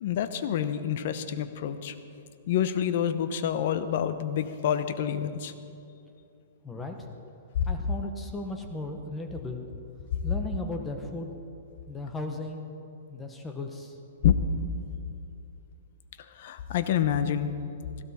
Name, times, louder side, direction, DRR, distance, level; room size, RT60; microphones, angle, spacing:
voice 1, 0.0-1.9 2.5-5.5 14.2-14.3 16.4-17.5, left 9 dB, 50° left, 11 dB, 0.8 m, -27 dB
voice 2, 6.6-7.1 7.7-9.6 10.2-11.3 11.8-12.6 13.1-14.0, left 2 dB, 10° left, 4 dB, 0.9 m, -36 dB
16.5 x 15.5 x 4.2 m, 2.6 s
hypercardioid pair, 160°, 0 cm